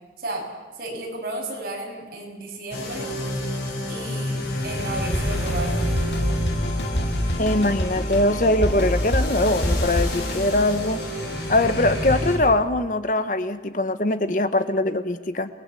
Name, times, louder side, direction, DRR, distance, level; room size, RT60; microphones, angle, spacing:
voice 1, 0.8-3.1 3.9-5.8, right 2 dB, 55° right, -1 dB, 7.0 m, -33 dB
sound 1, 2.7-12.4, left 1 dB, 70° left, 7.8 m, -27 dB
Drum kit, 5.1-10.5, left 1 dB, 85° left, 2.2 m, -29 dB
voice 2, 7.4-11.0 11.5-15.5, left 1 dB, 45° left, 11 dB, 1.1 m, -22 dB
28.5 x 20.0 x 8.4 m, 1.2 s
head